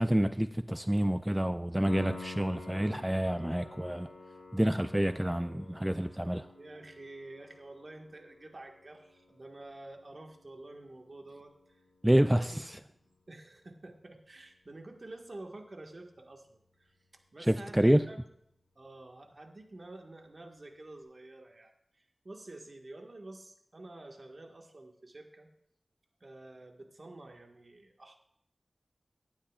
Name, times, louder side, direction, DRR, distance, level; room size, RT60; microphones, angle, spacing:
voice 1, 0.0-4.1 4.5-6.5 12.0-12.5 17.5-18.1, equal, 10° right, 11 dB, 0.4 m, -28 dB
Piano, 1.9-12.5 15.8-15.9, left 3 dB, 60° left, 3.5 m, -49 dB
voice 2, 6.5-11.8 12.2-12.6 13.0-18.2 18.7-25.5 26.2-28.2, right 2 dB, 55° right, 3 dB, 1.7 m, -49 dB
18.0 x 11.5 x 2.5 m, 0.73 s
wide cardioid pair, 50°, 0 cm